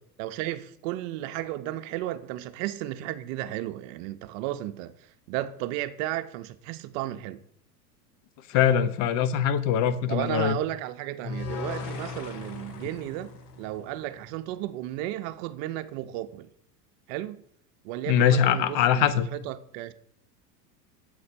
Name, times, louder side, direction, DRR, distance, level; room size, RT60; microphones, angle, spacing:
voice 1, 0.2-4.9 5.3-7.4 10.1-13.3 13.6-16.5 17.1-17.4 17.8-19.9, right 14 dB, 55° right, 0.6 m, -34 dB
voice 2, 8.5-10.6 18.1-19.3, left 9 dB, 40° left, 0.7 m, -22 dB
sound 1, 11.2-14.4, left 4 dB, 75° left, 1.2 m, -38 dB
7.6 x 4.1 x 4.3 m
hypercardioid pair, 100°, 48 cm